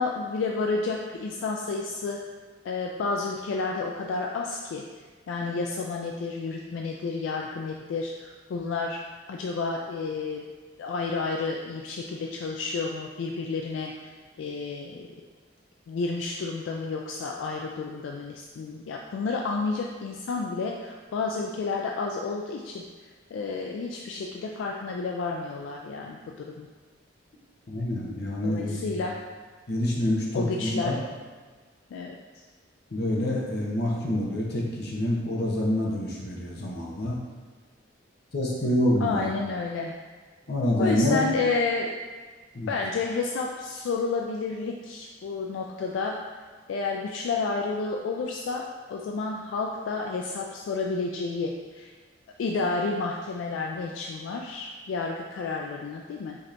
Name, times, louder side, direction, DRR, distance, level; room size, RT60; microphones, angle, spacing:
voice 1, 0.0-2.3 2.6-4.8 5.3-9.0 9.3-10.4 10.8-14.1 14.4-15.1 15.9-22.8 23.3-26.7 28.4-29.2 30.3-31.0 31.9-32.2 39.0-40.0 40.8-41.9 42.7-46.2 46.7-51.9 52.4-56.5, left 4 dB, 80° left, 0 dB, 0.3 m, -30 dB
voice 2, 27.7-28.9 29.7-31.0 32.9-37.2 38.3-39.2 40.5-41.2 42.5-42.7, left 1 dB, 60° left, -3 dB, 0.8 m, -27 dB
5.1 x 2.8 x 2.5 m, 1.4 s
head